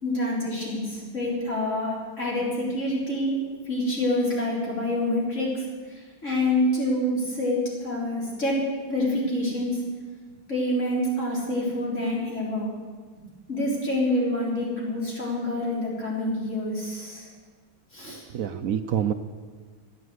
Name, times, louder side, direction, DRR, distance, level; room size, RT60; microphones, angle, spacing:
voice 1, 0.0-3.4 3.7-9.8 10.5-12.7 13.5-17.3 17.9-18.2, left 1 dB, 40° left, -4 dB, 4.1 m, -27 dB
voice 2, 18.1-19.1, right 9 dB, 70° right, 9 dB, 0.8 m, -27 dB
14.5 x 9.7 x 8.1 m, 1.5 s
omnidirectional pair, 2.1 m